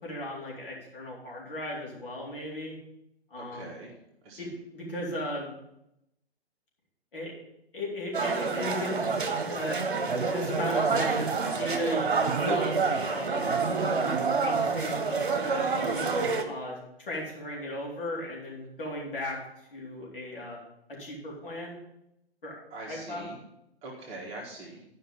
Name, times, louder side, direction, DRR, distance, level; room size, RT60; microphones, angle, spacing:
voice 1, 0.0-2.8 3.3-3.7 4.4-5.5 7.1-7.3 7.7-9.0 9.4-9.8 10.0-11.3 11.6-13.4 14.0-16.1 16.5-19.4 19.7-20.6 20.9-21.8 22.4-22.6 22.9-23.3, left 1 dB, 60° left, -3 dB, 3.8 m, -36 dB
voice 2, 3.4-3.9 4.2-4.5 22.7-23.4 23.8-24.8, right 2 dB, 20° right, -3 dB, 1.6 m, -42 dB
sound 1, 8.1-16.4, right 4 dB, 55° right, 1.3 m, -28 dB
11.0 x 5.5 x 5.5 m, 0.83 s
figure-of-eight pair, 125°, 32 cm